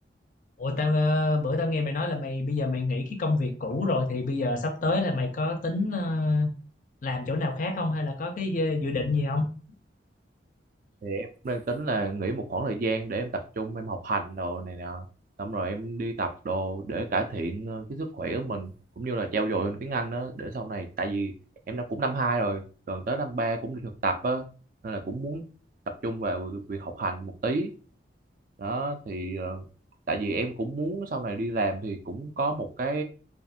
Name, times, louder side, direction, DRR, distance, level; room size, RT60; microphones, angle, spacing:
voice 1, 0.6-6.5 7.0-9.5, left 2 dB, 45° left, 6 dB, 0.4 m, -27 dB
voice 2, 11.0-15.1 15.4-21.3 21.7-24.4 24.8-25.4 25.9-27.7 28.6-29.6 30.1-33.0, right 2 dB, 45° right, 6 dB, 0.3 m, -30 dB
2.4 x 2.4 x 2.6 m, 0.37 s
head